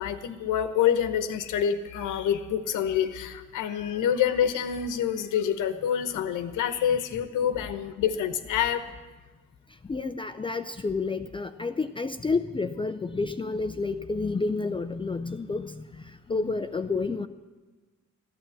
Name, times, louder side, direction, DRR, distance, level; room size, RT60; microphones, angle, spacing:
voice 1, 0.0-8.8 16.3-16.5, left 9 dB, 85° left, 9 dB, 1.1 m, -27 dB
voice 2, 9.8-17.3, left 3 dB, 15° left, 9 dB, 0.5 m, -30 dB
15.0 x 10.0 x 7.2 m, 1.3 s
cardioid pair, 90°, 30 cm